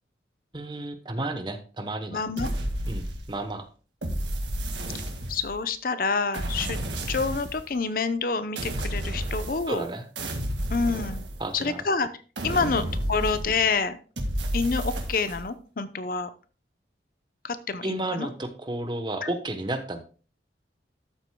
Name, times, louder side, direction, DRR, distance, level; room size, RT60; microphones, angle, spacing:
voice 1, 0.5-2.2 2.8-3.7 9.7-10.0 11.4-11.9 12.5-12.8 17.8-20.0, right 2 dB, 25° right, 8 dB, 0.9 m, -32 dB
voice 2, 2.1-2.5 5.3-6.8 7.1-9.9 10.7-11.3 11.5-12.1 12.4-14.0 14.5-16.3 17.4-18.3 19.2-19.3, left 4 dB, 50° left, 12 dB, 0.6 m, -27 dB
sound 1, 2.4-3.5 4.0-5.6 6.3-7.7 8.6-9.9 10.2-11.8 12.4-13.7 14.2-15.4, right 1 dB, 85° right, 1.9 m, -31 dB
13.0 x 7.8 x 2.2 m, 0.37 s
head